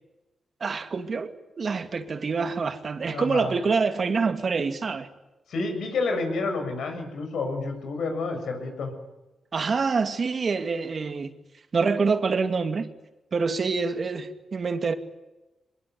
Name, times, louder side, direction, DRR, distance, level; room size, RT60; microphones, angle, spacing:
voice 1, 0.6-5.1 9.5-11.3 11.7-12.9 13.3-14.9, right 4 dB, 50° right, 2.4 m, -26 dB
voice 2, 3.1-3.5 5.5-8.9, left 3 dB, 80° left, 7.3 m, -29 dB
23.5 x 21.5 x 9.6 m
cardioid pair, 70°, 0 cm